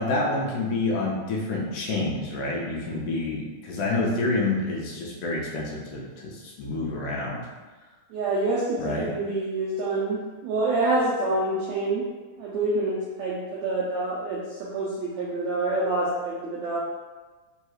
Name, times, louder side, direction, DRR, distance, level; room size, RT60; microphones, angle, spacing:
voice 1, 0.0-7.5 8.8-9.1, left 2 dB, 80° left, -2 dB, 2.1 m, -28 dB
voice 2, 8.1-12.0 12.4-16.8, right 2 dB, 85° right, -6 dB, 1.5 m, -27 dB
5.5 x 3.0 x 2.3 m, 1.3 s
omnidirectional pair, 3.8 m